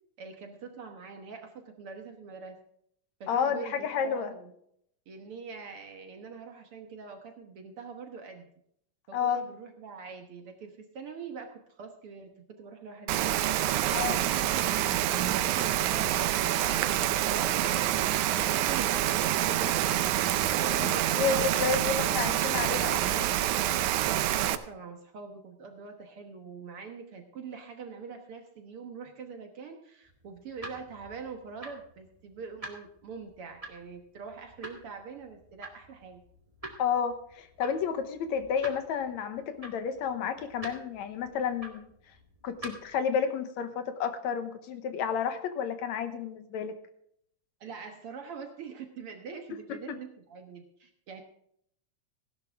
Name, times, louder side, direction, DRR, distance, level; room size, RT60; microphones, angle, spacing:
voice 1, 0.2-2.6 3.2-4.5 5.1-8.5 9.1-13.4 13.8-20.0 20.7-22.8 23.7-36.2 47.6-51.2, right 5 dB, 55° right, 5 dB, 1.8 m, -44 dB
voice 2, 3.3-4.3 9.1-9.4 13.9-14.2 20.6-23.3 36.8-41.9 42.4-46.7 49.7-50.0, left 7 dB, 70° left, 9 dB, 2.1 m, -31 dB
Rain, 13.1-24.6, right 13 dB, 80° right, 2.1 m, -27 dB
sound 1, 30.1-43.0, right 1 dB, 15° right, 1.3 m, -48 dB
16.5 x 11.5 x 3.5 m, 0.69 s
omnidirectional pair, 3.5 m